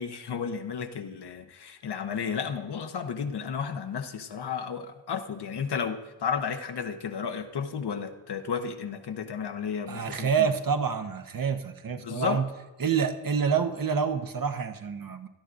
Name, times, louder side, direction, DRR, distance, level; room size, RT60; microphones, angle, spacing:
voice 1, 0.0-10.5 12.0-12.5, left 6 dB, 60° left, 7 dB, 1.0 m, -33 dB
voice 2, 9.9-12.4 12.8-15.3, right 6 dB, 45° right, 7 dB, 1.0 m, -27 dB
17.5 x 12.0 x 2.6 m, 1.1 s
supercardioid pair, 45°, 46 cm